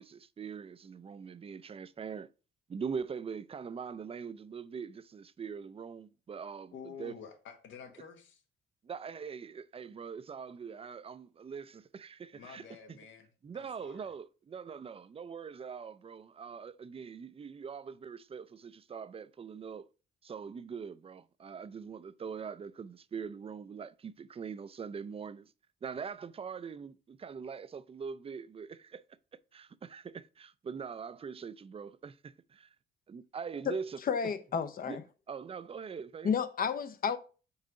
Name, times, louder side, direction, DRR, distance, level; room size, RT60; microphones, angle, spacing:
voice 1, 0.0-2.3 2.7-7.1 8.8-13.0 13.4-19.9 20.2-25.5 25.8-29.0 29.5-32.7 33.1-34.0 34.9-35.0 35.3-36.3, right 6 dB, 30° right, 0.4 m, -42 dB
voice 2, 6.7-8.4 12.3-13.3 13.5-14.1, left 7 dB, 75° left, 1.3 m, -49 dB
voice 3, 34.0-35.0 36.2-37.2, left 6 dB, 45° left, 0.7 m, -31 dB
5.6 x 4.7 x 3.8 m
cardioid pair, 90°, 20 cm